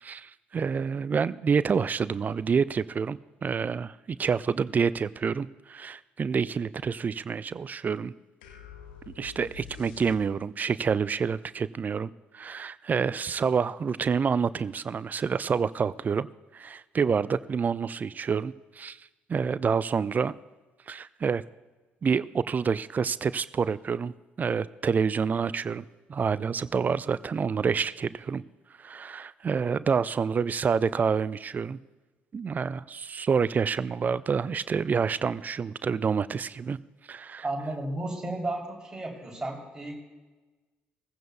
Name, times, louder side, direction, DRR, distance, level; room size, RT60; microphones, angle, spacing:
voice 1, 0.0-8.1 9.2-16.3 16.5-19.0 19.3-20.3 20.9-21.4 22.0-24.1 24.4-25.8 26.1-28.4 28.8-31.8 32.3-36.8 37.1-37.4, right 6 dB, 30° right, 18 dB, 0.4 m, -28 dB
sound 1, 8.4-10.7, left 7 dB, 70° left, 0.8 m, -47 dB
voice 2, 37.4-40.0, right 2 dB, 15° right, -1 dB, 3.3 m, -33 dB
19.0 x 15.0 x 2.3 m, 1.3 s
figure-of-eight pair, 45°, 5 cm